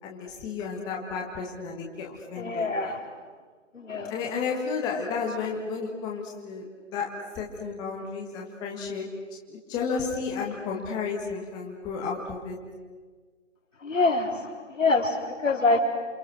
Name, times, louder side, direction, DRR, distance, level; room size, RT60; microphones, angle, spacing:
voice 1, 0.0-2.7 4.1-6.7 6.9-9.1 9.5-12.6, left 5 dB, 10° left, -1 dB, 1.7 m, -32 dB
voice 2, 2.4-3.0 3.7-4.1 13.8-15.8, left 3 dB, 75° left, 1 dB, 4.4 m, -25 dB
28.5 x 26.0 x 6.4 m, 1.5 s
figure-of-eight pair, 155°, 38 cm